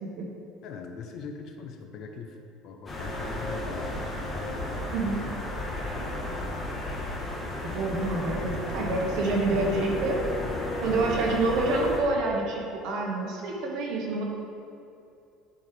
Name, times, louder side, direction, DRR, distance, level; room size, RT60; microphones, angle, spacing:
voice 1, 0.6-2.4 2.6-4.8 5.6-6.6 9.9-10.5, left 5 dB, 50° left, 4 dB, 0.8 m, -42 dB
sound 1, 2.9-12.0, left 1 dB, 20° left, 1.3 m, -33 dB
voice 2, 4.9-5.2 7.6-10.3 10.8-14.2, right 2 dB, 60° right, -1 dB, 1.4 m, -27 dB
10.5 x 4.7 x 3.4 m, 2.5 s
cardioid pair, 155°, 0 cm